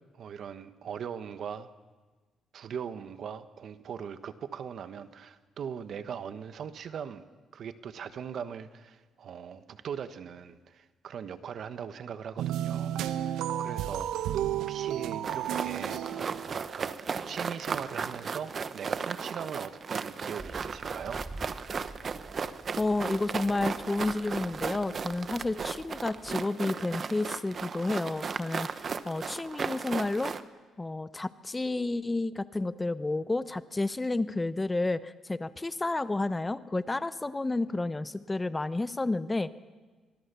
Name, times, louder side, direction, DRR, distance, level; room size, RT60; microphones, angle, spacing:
voice 1, 0.1-1.7 2.5-7.2 7.5-16.0 16.5-21.2, right 7 dB, 60° right, 11 dB, 1.3 m, -40 dB
sound 1, 12.4-17.0, right 11 dB, 90° right, 1.0 m, -32 dB
sound 2, 15.2-30.4, right 5 dB, 45° right, 1.1 m, -36 dB
sound 3, 20.4-26.3, right 2 dB, 10° right, 1.0 m, -48 dB
voice 2, 22.8-30.3 30.8-39.5, left 2 dB, 20° left, 13 dB, 0.9 m, -31 dB
25.0 x 19.5 x 7.0 m, 1.3 s
cardioid pair, 90°, 0 cm